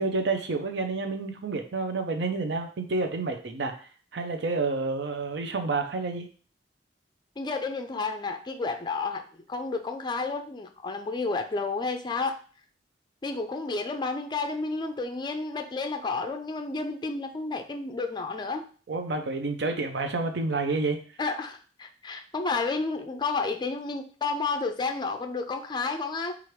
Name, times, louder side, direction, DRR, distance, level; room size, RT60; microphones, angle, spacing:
voice 1, 0.0-3.7 4.1-6.3 18.9-21.0, right 3 dB, 70° right, 5 dB, 0.5 m, -29 dB
voice 2, 7.4-9.2 9.5-12.4 13.2-18.7 21.2-26.4, left 3 dB, 25° left, 6 dB, 0.4 m, -31 dB
4.5 x 2.5 x 3.1 m, 0.40 s
head